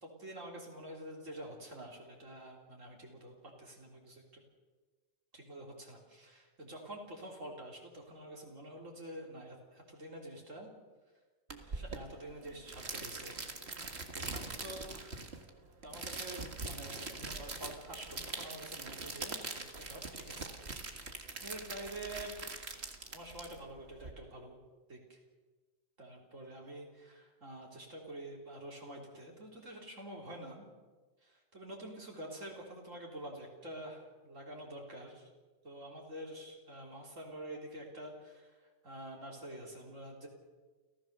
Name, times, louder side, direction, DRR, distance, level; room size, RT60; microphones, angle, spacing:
voice 1, 0.0-4.4 5.3-10.7 11.6-15.2 15.8-22.3 23.1-24.6 24.9-25.2 26.0-30.7 31.2-35.3 35.6-40.3, right 1 dB, 70° right, -1 dB, 3.9 m, -48 dB
sound 1, 11.5-24.1, right 3 dB, 55° right, 2.1 m, -43 dB
29.5 x 15.0 x 6.7 m, 1.3 s
omnidirectional pair, 1.4 m